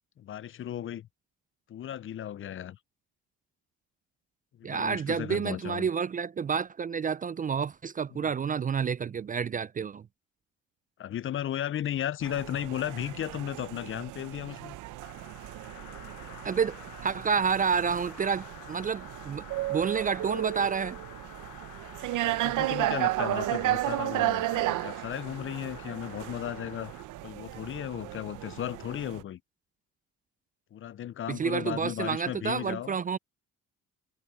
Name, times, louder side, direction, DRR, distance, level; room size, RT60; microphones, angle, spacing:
voice 1, 0.2-1.1 1.7-2.8 4.6-5.9 8.1-8.3 11.0-14.7 22.2-26.9 27.2-29.4 30.7-33.0, left 11 dB, 45° left, 0.5 m, -35 dB
voice 2, 4.6-10.0 16.4-16.8 17.0-19.4 19.7-21.0 31.3-33.2, right 6 dB, 30° right, 0.4 m, -29 dB
sound 1, 12.2-29.2, right 15 dB, 85° right, 0.8 m, -34 dB
sound 2, 15.0-27.0, left 15 dB, 90° left, 1.1 m, -49 dB
cardioid pair, 90°, 30 cm